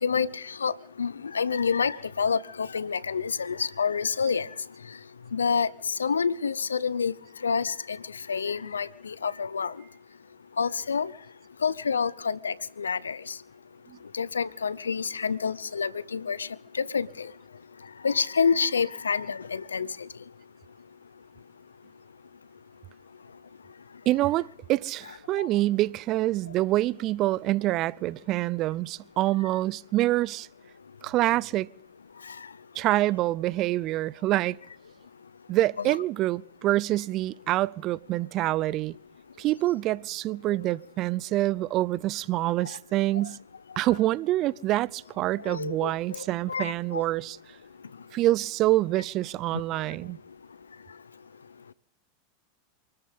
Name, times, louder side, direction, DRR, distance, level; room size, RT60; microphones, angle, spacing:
voice 1, 0.0-0.7 1.0-4.5 5.3-7.1 7.4-8.0 8.3-9.7 10.6-11.1 11.6-13.3 14.1-16.5 16.7-17.3 18.0-19.9 25.4-25.5 45.4-46.2 46.5-47.0, left 6 dB, 90° left, 0.7 m, -28 dB
voice 2, 24.1-30.5 31.0-31.7 32.7-34.6 35.5-39.0 39.4-43.4 43.8-47.4 48.1-50.2, right 16 dB, 45° right, 0.5 m, -26 dB
27.5 x 13.5 x 3.7 m
hypercardioid pair, 95°, 0 cm